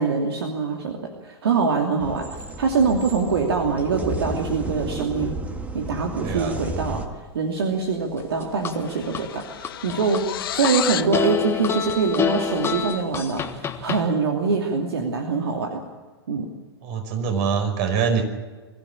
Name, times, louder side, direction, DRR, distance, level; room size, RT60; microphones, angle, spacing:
voice 1, 0.0-5.4 5.7-7.0 7.3-10.2 10.5-15.8 16.3-16.5, right 5 dB, 65° right, 2 dB, 2.8 m, -24 dB
sound 1, 2.0-7.1, right 2 dB, 10° right, 2.1 m, -32 dB
voice 2, 6.2-6.6 16.8-18.2, right 6 dB, 45° right, 5 dB, 5.2 m, -24 dB
sound 2, 8.0-8.2 8.5-11.2, left 11 dB, 60° left, 0.9 m, -31 dB
sound 3, 8.2-9.2 9.6-10.7 11.1-14.0, left 6 dB, 20° left, 1.6 m, -26 dB
22.5 x 15.5 x 8.8 m, 1.4 s
figure-of-eight pair, 105°, 14 cm